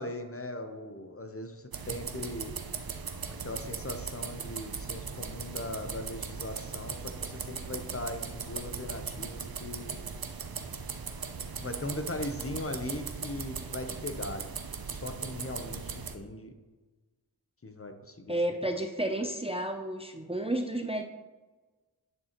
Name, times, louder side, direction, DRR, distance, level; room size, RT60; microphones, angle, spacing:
voice 1, 0.0-2.5 3.4-9.9 11.6-14.4 14.9-16.5 17.6-18.4, left 2 dB, 35° left, 7 dB, 0.7 m, -39 dB
sound 1, 1.7-16.2, right 5 dB, 65° right, 0.7 m, -39 dB
voice 2, 18.3-21.0, right 1 dB, 15° right, 5 dB, 0.5 m, -31 dB
10.5 x 6.4 x 3.0 m, 1.3 s
wide cardioid pair, 55°, 40 cm